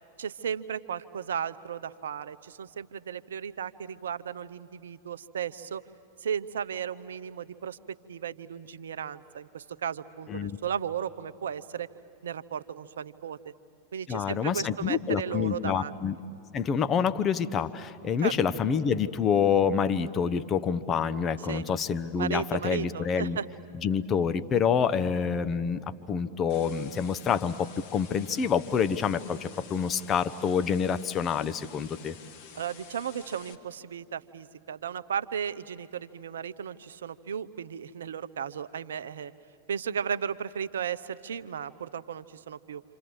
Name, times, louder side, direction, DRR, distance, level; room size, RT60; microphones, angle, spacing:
voice 1, 0.2-5.8 6.2-11.9 12.2-13.5 13.9-16.0 18.2-18.3 21.5-21.7 22.2-23.5 32.5-39.3 39.7-42.8, right 8 dB, 65° right, 13 dB, 0.7 m, -35 dB
voice 2, 14.1-16.2 16.5-23.4 23.8-32.1, left 7 dB, 25° left, 11 dB, 0.9 m, -27 dB
sound 1, 26.5-33.5, left 7 dB, 50° left, 1.9 m, -50 dB
27.5 x 27.0 x 7.9 m, 2.8 s
figure-of-eight pair, 90°, 0 cm